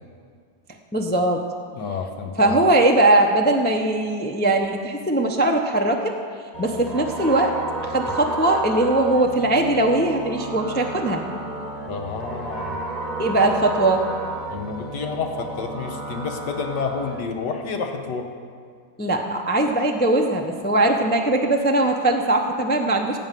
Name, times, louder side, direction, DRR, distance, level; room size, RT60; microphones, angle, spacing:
voice 1, 0.9-1.4 2.4-6.1 6.6-7.6 7.8-11.2 13.2-14.0 19.0-23.2, right 2 dB, 15° left, 2 dB, 0.3 m, -20 dB
voice 2, 1.7-2.6 11.9-12.8 14.5-18.3, left 5 dB, 75° left, 3 dB, 1.8 m, -29 dB
sound 1, 6.5-17.2, right 2 dB, 30° right, 0.9 m, -32 dB
16.5 x 5.5 x 9.1 m, 2.1 s
omnidirectional pair, 1.9 m